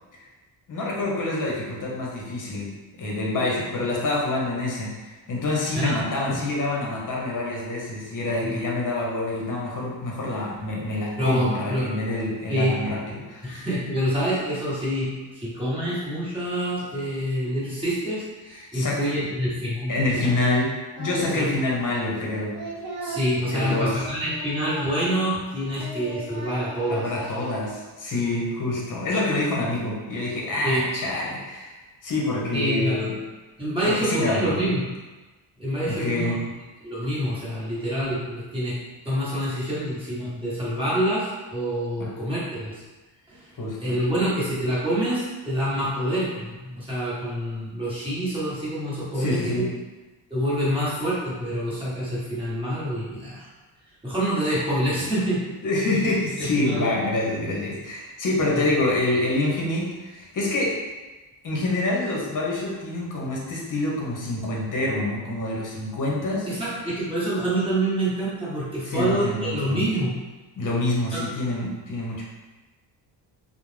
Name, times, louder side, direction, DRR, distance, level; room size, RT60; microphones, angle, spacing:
voice 1, 0.7-2.7 3.0-13.5 18.7-19.0 19.9-22.5 23.5-24.0 26.9-31.7 32.0-33.1 33.8-34.6 35.9-36.4 42.0-42.1 43.6-44.0 49.1-49.6 55.6-60.8 61.4-66.5 68.8-69.9 70.6-72.2, left 2 dB, 40° left, -3 dB, 0.8 m, -26 dB
voice 2, 11.2-11.9 12.5-12.7 13.4-20.2 21.3-21.5 23.0-27.3 30.6-30.8 32.5-33.1 33.6-34.9 35.6-36.4 36.8-38.8 39.0-42.8 43.3-43.5 43.8-49.6 50.3-53.5 54.0-55.4 56.4-56.9 58.5-58.6 66.5-70.1 71.1-71.2, equal, 10° right, -10 dB, 1.1 m, -26 dB
Singing, 21.0-21.5 21.8-25.4 25.7-27.8, right 2 dB, 40° right, 0.8 m, -37 dB
2.4 x 2.0 x 3.2 m, 1.2 s
cardioid pair, 105°, 47 cm